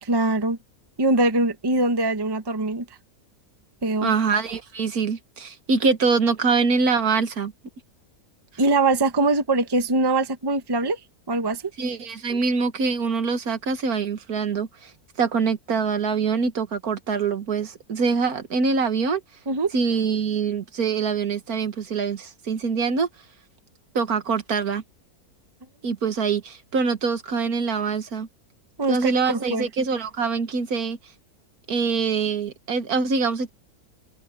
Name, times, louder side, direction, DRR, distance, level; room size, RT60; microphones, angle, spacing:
voice 1, 0.0-0.6 1.0-2.8 3.8-4.1 8.6-11.0 11.3-11.6 19.5-19.7 28.8-29.7, right 2 dB, 20° right, 0.9 m, -22 dB
voice 2, 4.0-7.5 11.8-14.9 15.2-19.2 19.7-23.1 24.0-24.8 25.8-28.3 28.9-31.0 31.7-33.5, right 5 dB, 70° right, 2.0 m, -24 dB
omnidirectional pair, 1.6 m